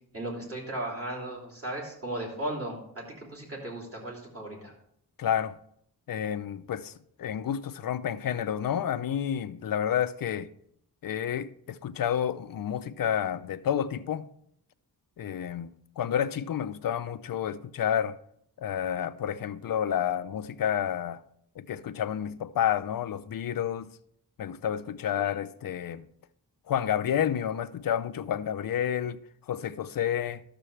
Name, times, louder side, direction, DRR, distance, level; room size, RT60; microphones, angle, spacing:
voice 1, 0.1-4.7, right 1 dB, 35° right, 3.0 m, -36 dB
voice 2, 5.2-5.6 6.1-10.5 11.0-14.3 15.2-18.2 18.6-21.2 21.6-23.9 24.4-26.1 26.7-30.4, left 9 dB, 60° left, 0.5 m, -30 dB
12.5 x 6.8 x 3.3 m
wide cardioid pair, 130°, 39 cm